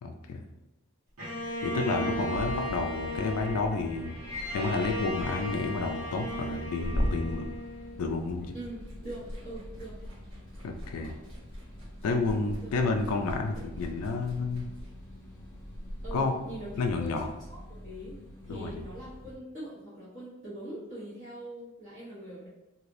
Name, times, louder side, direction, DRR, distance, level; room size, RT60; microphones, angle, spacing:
voice 1, 0.0-0.4 1.6-4.2 4.5-7.5 8.0-8.5 10.6-11.2 12.0-14.7 16.1-16.3 16.8-17.3 18.5-18.8, left 3 dB, 80° left, 4 dB, 0.3 m, -30 dB
Bowed string instrument, 1.2-8.4, equal, 80° right, 1.4 m, -36 dB
sound 1, 1.7-19.4, left 1 dB, 10° left, 0.7 m, -47 dB
Liquid, 6.4-8.4 8.6-16.2, equal, 55° right, 1.1 m, -39 dB
voice 2, 8.5-10.0 12.6-12.7 16.0-16.7 17.0-22.5, right 1 dB, 35° right, -11 dB, 0.9 m, -42 dB
3.2 x 2.8 x 2.5 m, 0.98 s
head